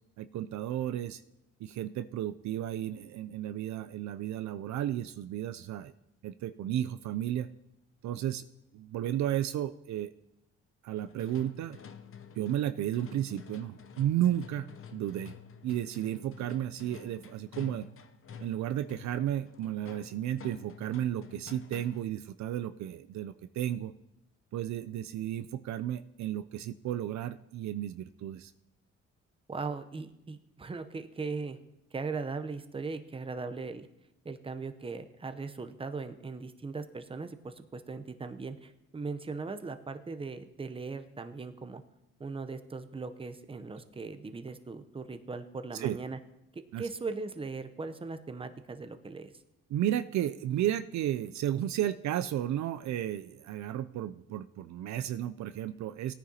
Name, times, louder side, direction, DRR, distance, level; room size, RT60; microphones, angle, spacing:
voice 1, 0.2-1.2 1.6-5.9 6.2-7.5 8.0-8.4 8.7-10.1 10.8-11.8 12.4-15.3 15.6-17.9 18.4-23.9 24.5-28.5 45.7-46.0 46.7-46.9 49.7-56.1, right 11 dB, 65° right, 11 dB, 0.5 m, -33 dB
sound 1, 11.0-22.2, left 7 dB, 45° left, 0.8 m, -50 dB
voice 2, 29.5-31.6 31.9-33.9 34.2-41.8 42.2-46.2 46.5-49.3, right 4 dB, 20° right, 9 dB, 0.7 m, -39 dB
17.5 x 9.7 x 2.8 m, 0.86 s
cardioid pair, 90°, 30 cm